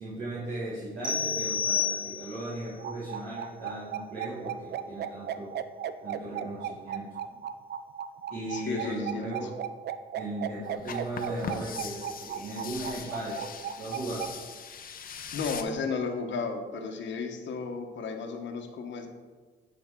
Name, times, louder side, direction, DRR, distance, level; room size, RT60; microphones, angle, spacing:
voice 1, 0.0-5.5 6.0-7.0 8.3-9.5 10.1-13.4 13.8-14.3, right 1 dB, 85° right, -9 dB, 2.5 m, -37 dB
sound 1, 1.0-2.6, left 6 dB, 25° right, 1.2 m, -30 dB
sound 2, 2.7-14.3, right 9 dB, 55° right, 0.4 m, -36 dB
voice 2, 8.5-9.5 15.3-19.1, left 4 dB, 70° left, 4 dB, 1.1 m, -34 dB
sound 3, 10.8-15.6, left 6 dB, 45° left, 0.7 m, -41 dB
9.5 x 5.2 x 3.7 m, 1.4 s
cardioid pair, 90°, 20 cm